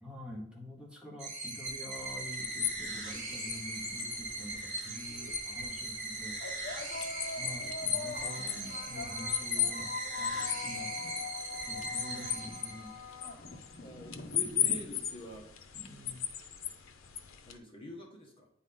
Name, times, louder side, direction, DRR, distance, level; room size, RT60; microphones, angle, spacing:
voice 1, 0.0-6.4 7.4-10.9 11.4-13.0 14.4-14.9 15.7-16.3, left 1 dB, 5° right, -3 dB, 1.1 m, -47 dB
sound 1, 1.2-13.1, right 2 dB, 40° right, 2.2 m, -40 dB
sound 2, 1.9-17.6, left 10 dB, 85° left, 0.7 m, -38 dB
sound 3, 4.3-4.4 5.3-5.5 6.4-15.3, left 4 dB, 50° left, 0.9 m, -43 dB
voice 2, 13.8-15.5 17.4-18.5, equal, 30° left, 0 dB, 1.2 m, -46 dB
8.9 x 4.1 x 3.8 m, 0.68 s
head